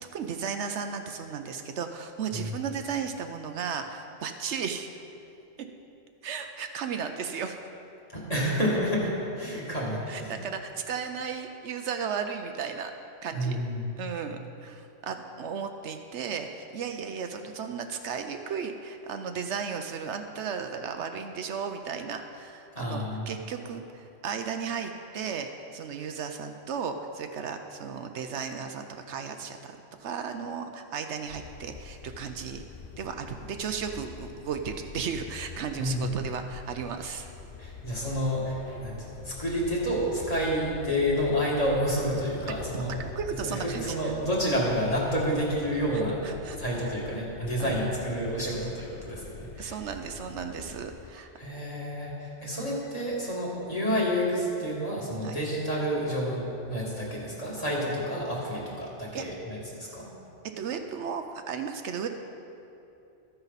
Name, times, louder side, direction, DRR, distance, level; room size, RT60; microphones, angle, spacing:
voice 1, 0.1-4.9 6.2-7.6 10.1-12.9 13.2-13.6 14.0-32.6 33.0-37.3 42.7-44.1 45.9-46.9 47.6-47.8 49.6-51.3 55.2-55.4 59.1-59.2 60.6-62.1, right 6 dB, 75° right, 6 dB, 0.9 m, -35 dB
voice 2, 8.1-10.3 13.3-13.8 22.7-23.3 35.7-36.1 37.6-42.9 43.4-46.2 46.6-49.8 51.4-60.1, equal, 30° left, -5 dB, 2.3 m, -29 dB
sound 1, 31.3-51.1, left 6 dB, 55° left, 0.7 m, -45 dB
13.5 x 9.7 x 4.1 m, 2.8 s
omnidirectional pair, 1.2 m